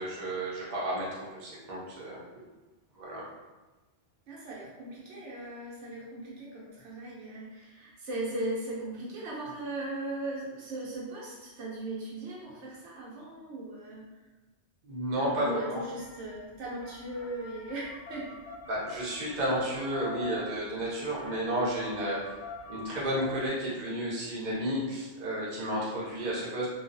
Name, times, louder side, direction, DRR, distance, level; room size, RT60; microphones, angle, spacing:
voice 1, 0.0-2.3 2.9-3.3 14.8-15.8 18.7-22.3 22.7-26.7, right 1 dB, 45° right, -6 dB, 0.7 m, -32 dB
voice 2, 4.3-14.0 15.3-18.4, right 1 dB, 85° right, -5 dB, 1.0 m, -38 dB
sound 1, 16.0-23.5, left 4 dB, 80° left, 0.9 m, -46 dB
2.4 x 2.3 x 2.6 m, 1.2 s
omnidirectional pair, 1.2 m